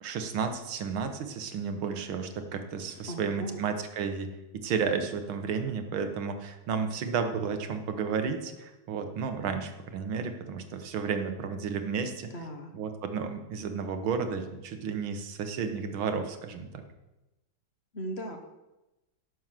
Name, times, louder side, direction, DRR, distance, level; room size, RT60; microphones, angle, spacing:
voice 1, 0.0-12.3 12.7-16.8, right 6 dB, 85° right, 7 dB, 1.9 m, -32 dB
voice 2, 3.1-3.6 12.3-12.7 17.9-18.4, equal, 35° left, 4 dB, 1.4 m, -38 dB
11.0 x 6.4 x 7.4 m, 1.0 s
omnidirectional pair, 2.2 m